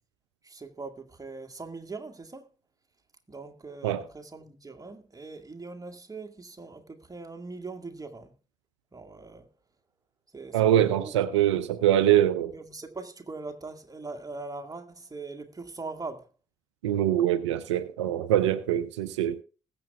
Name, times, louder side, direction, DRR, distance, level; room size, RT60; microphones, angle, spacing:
voice 1, 0.4-2.4 3.3-8.3 8.9-9.5 10.3-11.1 11.6-11.7 12.5-16.3, right 3 dB, 25° right, 1.9 m, -41 dB
voice 2, 10.5-12.5 16.8-19.4, right 11 dB, 80° right, 0.5 m, -23 dB
20.5 x 7.7 x 2.3 m
figure-of-eight pair, 40°, 15 cm